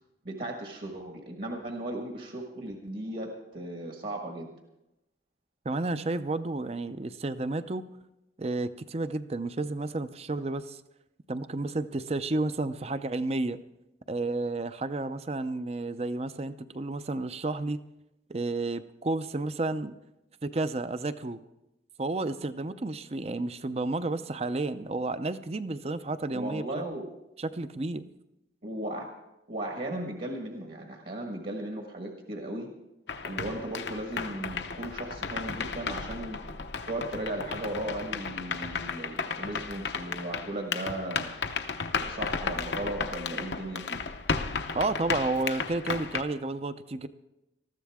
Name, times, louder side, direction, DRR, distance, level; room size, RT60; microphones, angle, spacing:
voice 1, 0.2-4.5 26.3-27.0 28.6-29.1 29.5-32.7 33.2-36.4 36.9-41.3 42.0-44.0, right 1 dB, 50° right, 2 dB, 1.6 m, -36 dB
voice 2, 5.6-7.9 8.4-10.8 11.3-13.6 14.1-17.8 18.3-19.9 20.4-21.4 22.0-26.8 27.4-28.0 44.7-47.1, right 2 dB, 35° right, 12 dB, 0.5 m, -31 dB
sound 1, 33.1-46.2, left 5 dB, 75° left, 0.8 m, -34 dB
20.0 x 14.0 x 3.6 m, 0.92 s
head